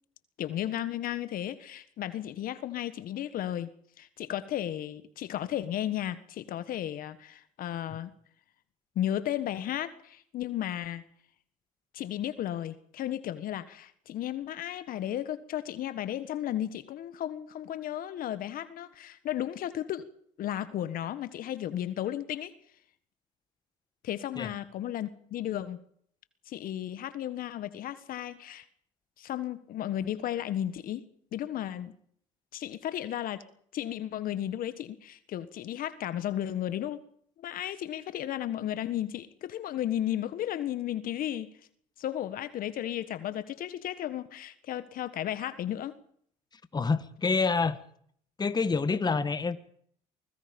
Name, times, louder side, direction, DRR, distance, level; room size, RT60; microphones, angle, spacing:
voice 1, 0.4-3.7 4.0-8.1 8.9-11.0 11.9-20.1 20.4-22.5 24.0-25.8 26.5-28.6 29.2-31.0 31.3-32.0 32.5-33.4 33.7-37.0 37.4-41.5 42.0-45.9, left 11 dB, 60° left, 13 dB, 1.4 m, -34 dB
voice 2, 46.7-47.8 48.4-49.6, left 4 dB, 25° left, 12 dB, 1.5 m, -27 dB
24.5 x 20.5 x 5.3 m, 0.64 s
supercardioid pair, 75°, 16 cm